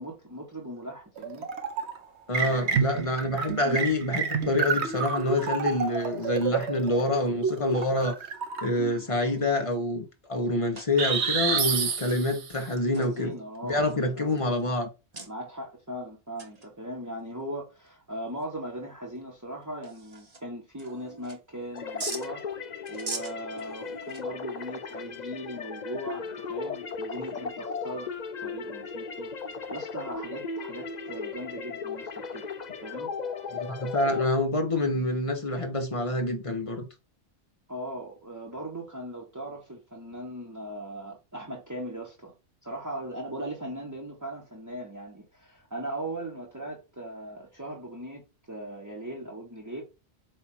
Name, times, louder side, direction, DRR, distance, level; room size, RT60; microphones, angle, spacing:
voice 1, 0.0-1.5 2.4-2.9 13.0-14.3 15.3-22.4 22.9-28.1 28.4-29.3 29.7-33.1 33.4-33.6 37.7-42.3 42.6-48.2 48.5-49.8, right 1 dB, 15° right, 1.4 m, -39 dB
sound 1, 1.2-2.0 2.3-8.9 11.0-12.6, right 6 dB, 85° right, 1.2 m, -29 dB
voice 2, 2.3-8.2 8.6-13.3 13.6-14.9 33.6-36.9, left 1 dB, 30° left, 1.3 m, -27 dB
sound 2, 7.5-7.9 8.8-8.9 9.3-9.7 10.2-10.3 10.7-12.3 12.8-14.6 15.1-15.3 16.4-16.7 17.0-17.1 17.8-17.9 18.4-18.5 19.2-19.3 19.6-20.4 20.8-21.6 22.0-22.3 22.8-24.5, right 3 dB, 35° right, 1.2 m, -42 dB
sound 3, 21.7-34.3, left 5 dB, 45° left, 0.8 m, -36 dB
7.9 x 2.8 x 4.6 m
omnidirectional pair, 1.1 m